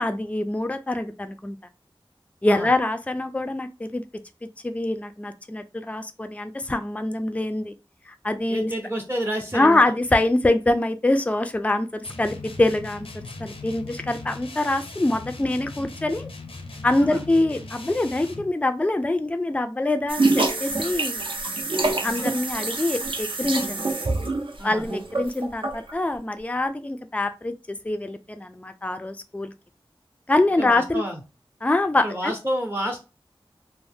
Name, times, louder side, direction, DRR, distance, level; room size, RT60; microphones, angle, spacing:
voice 1, 0.0-1.6 2.4-4.0 4.6-7.7 8.1-8.7 9.5-11.9 12.2-13.1 13.4-16.3 16.8-21.2 22.0-23.8 24.6-27.5 27.8-29.5 30.3-31.0 31.6-32.3, left 2 dB, 15° left, 8 dB, 0.3 m, -24 dB
voice 2, 8.5-9.8 17.0-17.2 22.0-22.3 24.6-24.8 30.6-31.2 32.0-33.0, equal, 25° right, 1 dB, 0.6 m, -29 dB
sound 1, 12.0-18.5, left 3 dB, 80° left, 0.5 m, -39 dB
sound 2, 20.1-25.9, right 2 dB, 65° right, 0.5 m, -26 dB
2.6 x 2.0 x 3.4 m, 0.29 s
wide cardioid pair, 50°, 9 cm